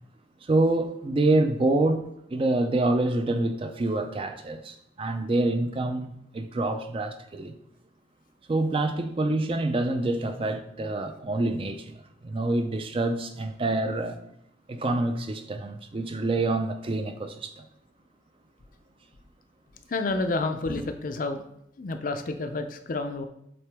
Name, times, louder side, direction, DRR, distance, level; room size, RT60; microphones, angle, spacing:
voice 1, 0.4-7.6 8.5-14.2 14.7-17.7 20.7-20.8, right 2 dB, 30° right, 0.4 m, -27 dB
voice 2, 19.9-21.4 21.8-23.3, left 3 dB, 45° left, 0.5 m, -29 dB
7.6 x 3.7 x 3.4 m
head